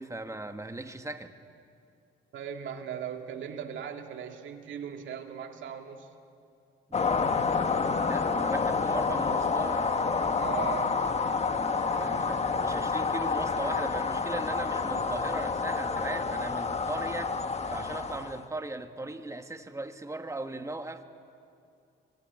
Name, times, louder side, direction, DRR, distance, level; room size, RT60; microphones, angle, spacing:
voice 1, 0.0-1.3 7.8-9.9 12.0-17.3 17.7-21.0, right 2 dB, 15° right, 7 dB, 1.6 m, -38 dB
voice 2, 2.3-6.1 10.4-11.0, right 8 dB, 75° right, 3 dB, 2.5 m, -38 dB
sound 1, 6.9-18.4, left 4 dB, 35° left, 1.3 m, -29 dB
25.0 x 19.5 x 9.6 m, 2.4 s
cardioid pair, 90°, 20 cm